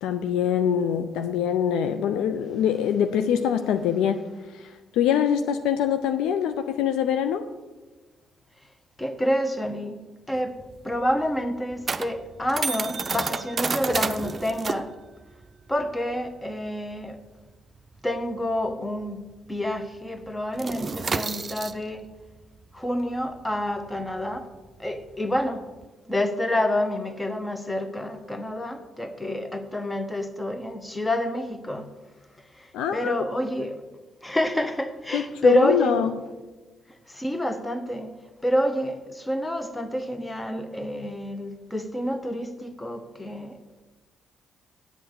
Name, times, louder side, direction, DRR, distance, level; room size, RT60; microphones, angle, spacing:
voice 1, 0.0-4.2 4.9-7.4 32.7-33.3 35.1-36.1, left 9 dB, 70° left, 9 dB, 0.5 m, -24 dB
voice 2, 9.0-10.0 10.3-10.6 10.8-14.9 15.7-17.2 18.0-19.2 19.5-22.0 22.7-24.5 24.8-25.6 26.1-31.9 32.6-32.7 32.9-33.8 34.2-36.1 37.1-38.1 38.4-43.6, equal, 15° left, 9 dB, 1.2 m, -28 dB
sound 1, 10.3-19.3 19.6-19.8 20.1-25.9, right 4 dB, 35° right, 0.6 m, -32 dB
8.6 x 7.7 x 6.8 m, 1.2 s
hypercardioid pair, 45°, 0 cm